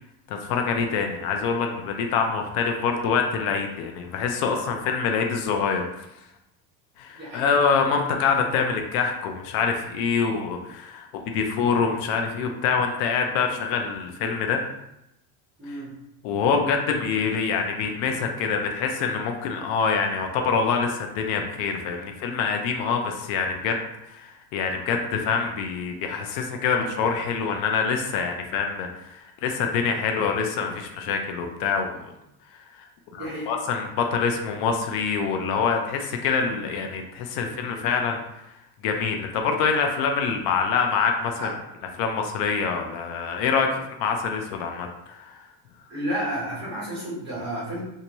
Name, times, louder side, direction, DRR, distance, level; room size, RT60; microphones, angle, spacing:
voice 1, 0.3-6.1 7.0-14.6 15.7-15.8 16.2-23.8 24.0-32.1 32.8-32.9 33.1-38.4 38.8-41.5 41.9-45.4, left 5 dB, 65° left, 3 dB, 0.6 m, -25 dB
voice 2, 7.1-7.5 15.6-15.9 33.2-33.5 41.4-41.5 45.9-47.8, equal, 25° right, -6 dB, 1.3 m, -31 dB
3.4 x 2.8 x 3.0 m, 0.86 s
cardioid pair, 175°, 44 cm